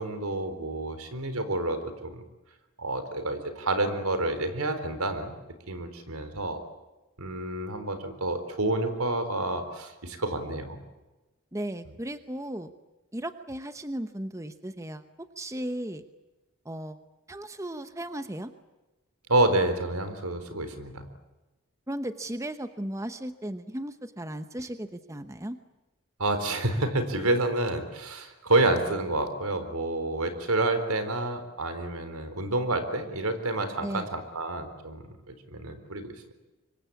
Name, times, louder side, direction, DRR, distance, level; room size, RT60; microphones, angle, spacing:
voice 1, 0.0-2.2 2.8-5.3 5.7-6.6 7.2-10.8 19.3-21.1 26.2-36.1, right 2 dB, 85° right, 9 dB, 3.9 m, -29 dB
voice 2, 11.5-12.7 13.1-16.0 16.6-17.0 17.3-18.5 21.9-25.6 33.8-34.1, right 1 dB, 15° right, 10 dB, 0.9 m, -36 dB
25.5 x 24.0 x 8.6 m, 1.1 s
head